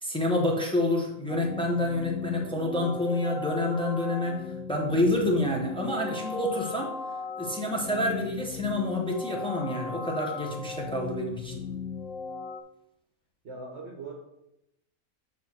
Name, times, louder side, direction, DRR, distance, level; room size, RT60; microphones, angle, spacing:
voice 1, 0.0-6.9 7.4-11.6, left 1 dB, 5° left, 0 dB, 0.9 m, -28 dB
sound 1, 1.3-12.6, left 5 dB, 70° left, 0.9 m, -37 dB
voice 2, 11.4-11.9 13.4-14.1, right 3 dB, 55° right, 0 dB, 1.2 m, -42 dB
7.7 x 3.1 x 6.0 m, 0.85 s
omnidirectional pair, 1.5 m